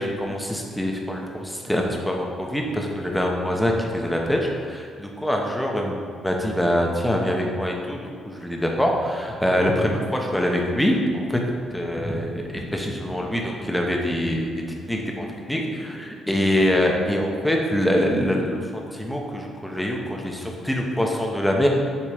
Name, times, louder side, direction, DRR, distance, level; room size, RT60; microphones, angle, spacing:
voice 1, 0.0-6.0 6.2-11.4 11.7-21.7, equal, 5° left, 0 dB, 1.0 m, -24 dB
7.1 x 3.2 x 5.0 m, 2.1 s
cardioid pair, 90°, 0 cm